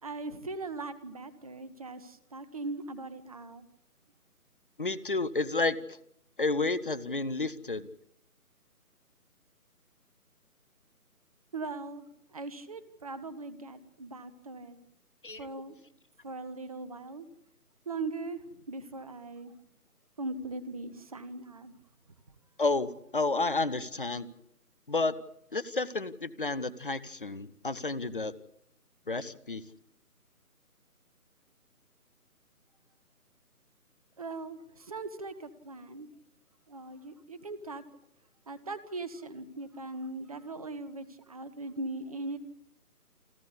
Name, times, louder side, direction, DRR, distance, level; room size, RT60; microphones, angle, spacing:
voice 1, 0.0-3.7 11.5-12.0 12.3-14.8 15.4-15.7 16.2-17.3 17.9-19.5 20.2-21.7 34.2-36.1 36.7-37.8 38.5-42.4, right 3 dB, 25° right, 15 dB, 1.2 m, -40 dB
voice 2, 4.8-6.0 6.4-7.9 15.2-15.5 22.6-24.3 24.9-25.1 25.5-28.3 29.1-29.6, left 3 dB, 35° left, 17 dB, 0.9 m, -31 dB
29.0 x 11.5 x 8.3 m, 0.73 s
figure-of-eight pair, 155°, 46 cm